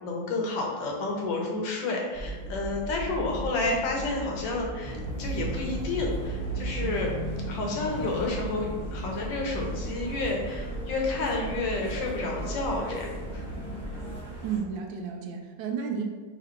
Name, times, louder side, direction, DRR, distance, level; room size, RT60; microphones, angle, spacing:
voice 1, 0.0-7.1 7.5-13.5, left 3 dB, 75° left, 0 dB, 1.5 m, -30 dB
Shadow Maker-Garden, 2.1-14.2, right 2 dB, 30° left, 1.1 m, -36 dB
sound 1, 4.8-14.6, right 1 dB, 10° right, 1.1 m, -38 dB
voice 2, 14.4-16.0, right 6 dB, 80° right, 3 dB, 1.3 m, -32 dB
3.8 x 2.9 x 4.4 m, 1.4 s
omnidirectional pair, 2.1 m